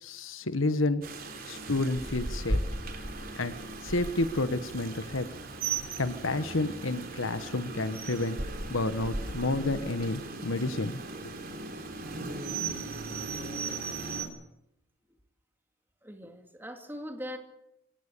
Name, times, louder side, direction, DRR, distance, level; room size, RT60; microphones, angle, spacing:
voice 1, 0.0-1.0 1.5-2.6 3.4-3.5 3.8-5.3 6.0-8.4 8.7-11.3, left 2 dB, 85° left, 12 dB, 1.4 m, -30 dB
Rain, 1.0-14.3, right 3 dB, 50° right, 3.6 m, -37 dB
voice 2, 16.0-17.4, equal, 10° right, 3 dB, 3.0 m, -40 dB
25.5 x 17.0 x 6.9 m, 0.84 s
head